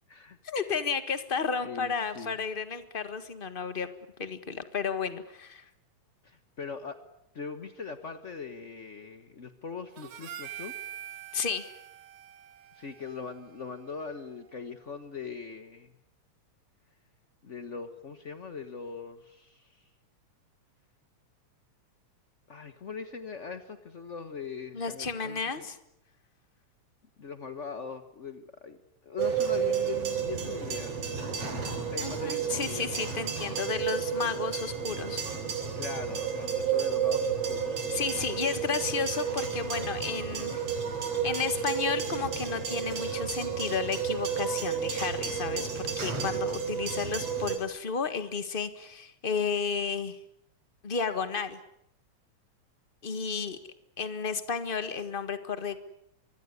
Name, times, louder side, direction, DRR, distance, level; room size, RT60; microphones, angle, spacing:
voice 1, 0.4-3.9 4.2-5.6 11.3-11.7 24.7-25.7 32.0-35.2 37.9-40.6 41.2-50.2 50.8-51.6 53.0-53.6 54.0-55.8, left 5 dB, 30° left, 11 dB, 1.0 m, -32 dB
voice 2, 1.6-2.4 6.2-7.0 7.3-10.8 12.7-15.9 17.4-19.9 22.5-25.7 27.2-28.8 29.0-31.4 31.6-32.9 35.8-37.8, left 5 dB, 55° left, 9 dB, 0.7 m, -41 dB
Harmonica, 10.0-14.4, right 11 dB, 75° right, 3.1 m, -45 dB
sound 1, 29.2-47.6, right 7 dB, 55° right, 4.4 m, -31 dB
24.5 x 22.0 x 9.8 m, 0.79 s
omnidirectional pair, 3.4 m